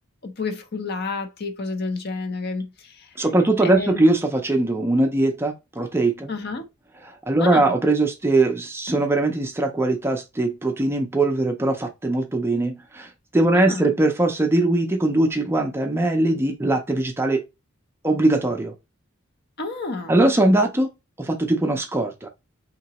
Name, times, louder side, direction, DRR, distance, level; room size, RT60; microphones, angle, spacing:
voice 1, 0.2-3.1 3.6-4.0 6.3-6.7 7.4-7.7 13.5-13.9 19.6-20.2, left 3 dB, 50° left, 0.6 m, -30 dB
voice 2, 3.2-6.3 7.1-17.4 18.0-18.7 20.1-20.9 21.2-22.3, right 2 dB, 10° right, 0.4 m, -21 dB
3.8 x 2.9 x 2.8 m
head